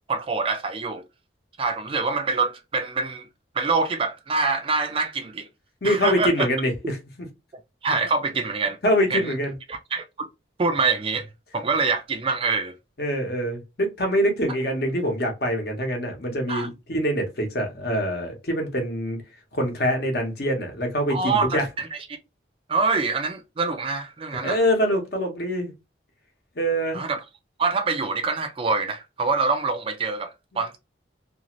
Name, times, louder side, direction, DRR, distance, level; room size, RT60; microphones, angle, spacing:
voice 1, 0.1-1.0 1.6-3.3 3.5-5.5 5.8-6.5 7.8-8.8 9.1-9.3 9.7-10.3 10.6-11.3 11.5-12.7 16.5-16.7 21.1-22.0 22.7-24.6 26.9-27.2 27.6-30.8, right 4 dB, 30° right, 0.3 m, -25 dB
voice 2, 5.8-7.0 8.8-9.5 13.0-19.2 19.5-21.7 24.4-25.7 26.6-27.0, equal, 55° left, 0.9 m, -24 dB
2.6 x 2.4 x 2.9 m
head